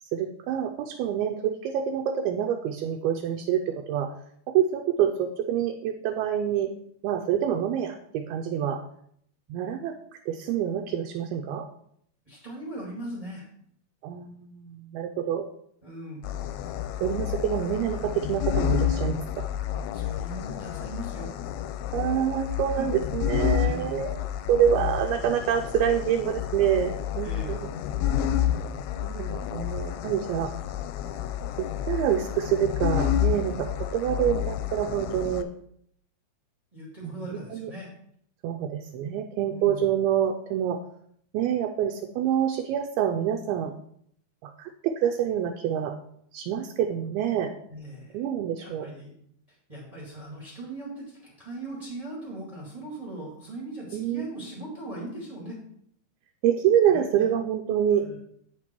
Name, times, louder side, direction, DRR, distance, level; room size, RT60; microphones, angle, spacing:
voice 1, 0.1-4.1 4.5-6.7 7.0-8.8 9.5-10.0 10.3-11.7 14.0-15.5 17.0-19.5 21.9-24.2 24.5-27.7 27.9-28.1 29.0-30.5 31.6-35.5 37.0-37.7 38.4-40.8 41.3-43.7 44.4-45.9 46.3-47.5 48.1-48.9 53.9-54.3 56.4-58.1, right 9 dB, 80° right, 4 dB, 2.3 m, -26 dB
voice 2, 12.2-13.5 15.8-16.3 19.9-21.3 22.8-22.9 23.5-24.0 27.2-27.6 36.7-37.9 39.3-39.9 47.7-48.2 48.6-49.2 49.5-55.6 56.9-57.3 57.9-58.1, right 1 dB, 20° right, -5 dB, 1.1 m, -39 dB
sound 1, 16.2-35.4, left 11 dB, 85° left, 2.5 m, -30 dB
8.3 x 5.9 x 4.5 m, 0.68 s
omnidirectional pair, 4.7 m